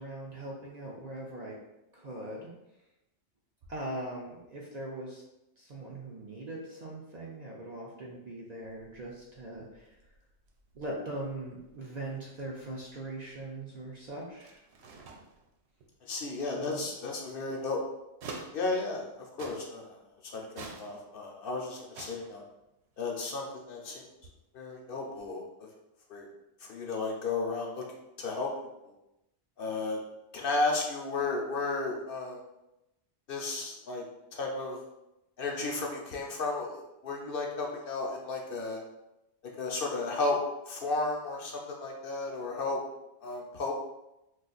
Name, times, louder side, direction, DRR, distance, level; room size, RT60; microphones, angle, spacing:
voice 1, 0.0-1.6 1.9-2.5 3.7-5.2 5.6-10.0 10.7-14.6 16.4-16.9, right 1 dB, 55° right, -4 dB, 0.5 m, -41 dB
sound 1, 8.6-19.1 19.4-20.0 20.4-21.5 21.8-23.7 24.0-25.3, right 3 dB, 75° right, 0.8 m, -50 dB
voice 2, 16.0-17.8 18.5-20.0 20.2-22.4 23.0-24.1 24.5-25.7 26.1-26.3 26.6-27.8 28.2-28.5 29.6-30.0 30.3-32.4 33.3-34.0 34.3-34.8 35.4-38.8 39.6-40.4 40.7-42.8 43.2-43.7, left 3 dB, 60° left, 0 dB, 0.7 m, -33 dB
2.4 x 2.4 x 3.8 m, 0.91 s
omnidirectional pair, 1.1 m